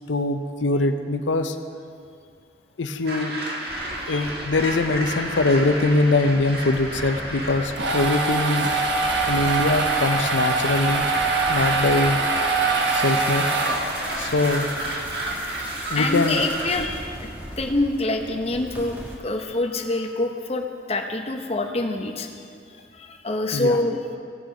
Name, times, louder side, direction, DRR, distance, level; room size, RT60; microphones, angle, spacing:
voice 1, 0.1-1.6 2.8-3.3 4.1-8.7 9.3-11.1 11.5-12.2 12.9-13.5 14.2-14.7 15.9-16.4 23.5-23.8, left 2 dB, 90° left, 8 dB, 0.7 m, -22 dB
sound 1, 3.1-16.7, right 1 dB, 55° right, 1.7 m, -32 dB
sound 2, 3.7-19.2, equal, 10° right, 1.3 m, -40 dB
sound 3, 7.5-14.2, right 3 dB, 75° right, 1.1 m, -23 dB
voice 2, 16.0-17.3 17.6-22.3 22.9-24.0, left 2 dB, 35° left, 4 dB, 0.8 m, -26 dB
17.0 x 6.6 x 5.0 m, 2.4 s
head